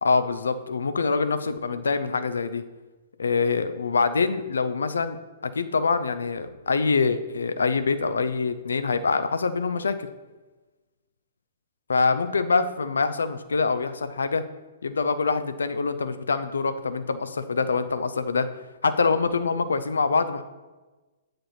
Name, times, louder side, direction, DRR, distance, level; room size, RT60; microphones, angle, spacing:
voice 1, 0.0-2.6 3.2-10.0 11.9-14.4 14.8-18.5 18.8-20.4, left 4 dB, 70° left, 11 dB, 0.6 m, -25 dB
8.8 x 5.1 x 4.3 m, 1.2 s
figure-of-eight pair, 115°, 0 cm